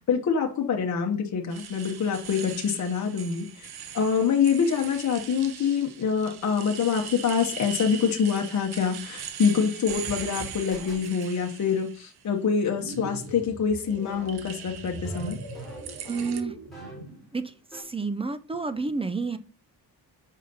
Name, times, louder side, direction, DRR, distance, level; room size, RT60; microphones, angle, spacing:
voice 1, 0.0-3.7 3.9-15.4, left 6 dB, 45° left, 2 dB, 1.0 m, -25 dB
sound 1, 1.5-12.1 12.7-13.2 13.8-16.4, right 8 dB, 75° right, 0.8 m, -41 dB
sound 2, 9.9-11.4 14.0-17.2 17.5-17.8, right 1 dB, ahead, 3.4 m, -45 dB
sound 3, 12.6-17.3, right 2 dB, 50° right, 2.7 m, -40 dB
voice 2, 16.1-16.5 17.3-19.4, right 4 dB, 15° right, 11 dB, 0.3 m, -30 dB
5.6 x 5.0 x 3.9 m, 0.36 s
wide cardioid pair, 145°, 39 cm